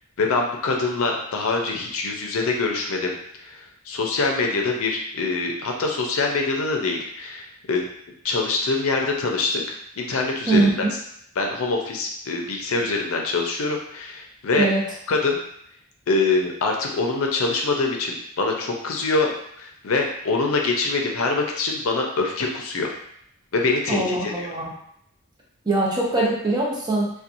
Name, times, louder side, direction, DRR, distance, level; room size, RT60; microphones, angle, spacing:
voice 1, 0.2-7.9 8.2-10.7 11.4-14.7 15.1-15.4 16.1-19.3 19.6-22.9 23.5-24.5, left 3 dB, 70° left, 1 dB, 0.5 m, -24 dB
voice 2, 10.5-10.9 14.6-14.8 23.9-24.7 25.7-27.1, right 2 dB, 20° right, -4 dB, 0.6 m, -22 dB
2.8 x 2.2 x 2.6 m, 0.70 s
head